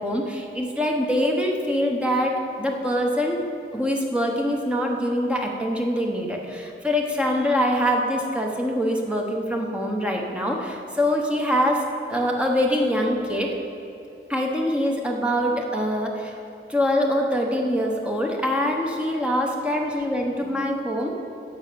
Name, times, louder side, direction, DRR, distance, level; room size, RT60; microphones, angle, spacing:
voice 1, 0.0-3.4 3.7-13.5 14.3-16.4 16.7-21.1, equal, 5° right, 0 dB, 1.0 m, -24 dB
10.5 x 6.3 x 6.9 m, 2.7 s
head